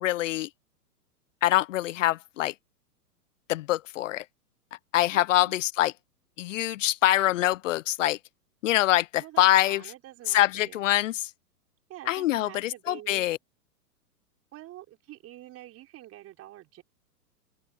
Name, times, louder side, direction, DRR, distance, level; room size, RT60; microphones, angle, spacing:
voice 1, 0.0-0.5 1.4-2.5 3.5-4.2 4.9-5.9 6.4-8.2 8.6-9.8 10.3-11.3 12.1-13.4, left 14 dB, 55° left, 0.8 m, -24 dB
voice 2, 5.1-5.5 9.2-10.8 11.9-13.3 14.5-16.8, right 14 dB, 30° right, 5.7 m, -46 dB
open air
hypercardioid pair, 115°, 46 cm